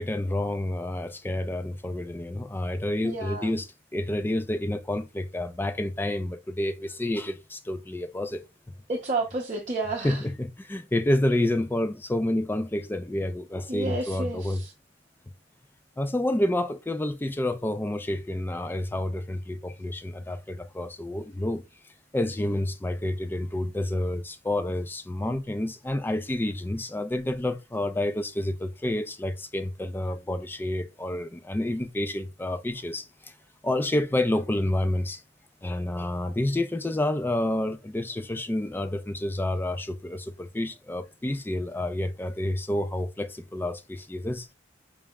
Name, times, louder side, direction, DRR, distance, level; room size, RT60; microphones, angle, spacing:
voice 1, 0.0-8.4 10.0-14.6 16.0-21.6 22.1-33.3 33.6-35.2 35.6-44.5, left 1 dB, 10° left, 0.3 m, -29 dB
voice 2, 3.0-3.5 8.9-10.2 13.7-14.7, right 2 dB, 40° right, 0.7 m, -31 dB
4.7 x 2.1 x 3.4 m
head